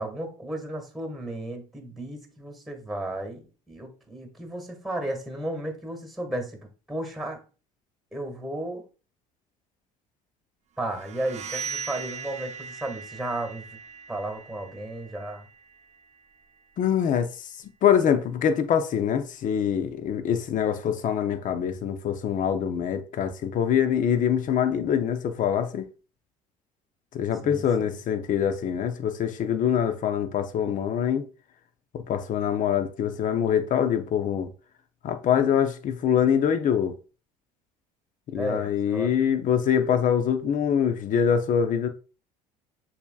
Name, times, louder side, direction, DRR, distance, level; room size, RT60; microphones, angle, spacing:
voice 1, 0.0-6.6 6.9-7.4 8.1-8.8 10.8-13.7 14.1-15.5 27.4-28.0 38.3-39.1, right 1 dB, ahead, 1.8 m, -34 dB
sound 1, 10.9-16.6, right 6 dB, 40° right, 0.6 m, -40 dB
voice 2, 16.8-17.5 17.8-25.9 27.1-31.3 31.9-34.5 35.0-36.9 38.3-41.9, left 8 dB, 50° left, 0.7 m, -24 dB
6.7 x 2.9 x 2.3 m
hypercardioid pair, 70°, 18 cm